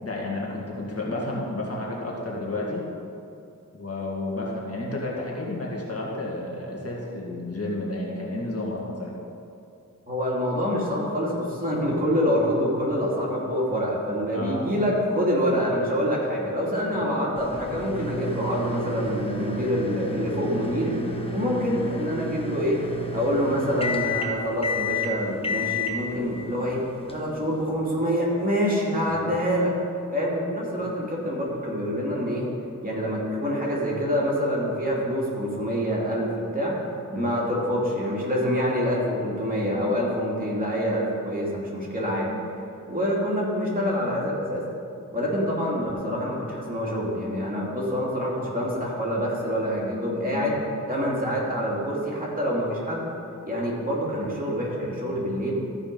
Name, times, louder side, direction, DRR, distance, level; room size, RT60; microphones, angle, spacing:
voice 1, 0.0-2.8 3.7-9.1 14.3-14.6 37.1-37.3 50.3-50.6, left 2 dB, 50° left, -3 dB, 1.9 m, -31 dB
voice 2, 10.1-22.8 23.1-26.8 27.1-29.7 30.1-32.5 32.8-36.8 37.1-42.3 42.9-44.7 45.1-50.6 50.9-53.1 53.4-55.5, equal, 25° right, -4 dB, 2.5 m, -26 dB
sound 1, 17.4-27.7, left 2 dB, 15° left, 1.0 m, -31 dB
14.0 x 4.9 x 5.3 m, 2.6 s
wide cardioid pair, 70°, 32 cm